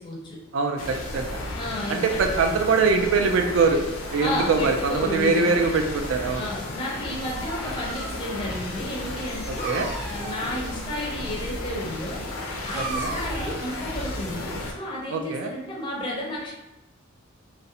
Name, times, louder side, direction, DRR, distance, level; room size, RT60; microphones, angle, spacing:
voice 1, 0.0-0.4 1.6-2.4 4.2-5.6 6.3-12.2 12.6-16.5, left 1 dB, 25° left, -4 dB, 0.5 m, -32 dB
voice 2, 0.5-1.4 1.9-3.8 4.1-6.4 9.4-9.9 12.7-13.1 15.1-15.5, right 4 dB, 70° right, 4 dB, 0.3 m, -23 dB
sound 1, 0.8-14.7, left 1 dB, 80° left, 0.4 m, -34 dB
Dog, 6.9-14.8, right 1 dB, 35° right, 0.7 m, -38 dB
2.4 x 2.0 x 2.7 m, 0.97 s
head